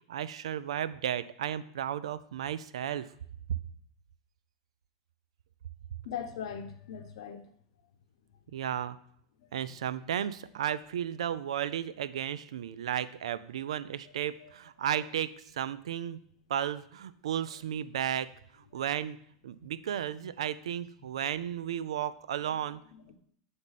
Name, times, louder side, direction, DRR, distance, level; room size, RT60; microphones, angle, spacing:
voice 1, 0.1-3.1 8.5-9.0 9.5-16.2 16.5-18.3 18.7-19.2 19.4-22.8, right 10 dB, 85° right, 15 dB, 0.3 m, -34 dB
voice 2, 6.0-7.4 14.4-14.5 18.7-18.8 19.6-19.7 22.9-23.2, left 8 dB, 75° left, 8 dB, 0.8 m, -40 dB
8.2 x 3.4 x 4.1 m, 0.64 s
hypercardioid pair, 115°, 3 cm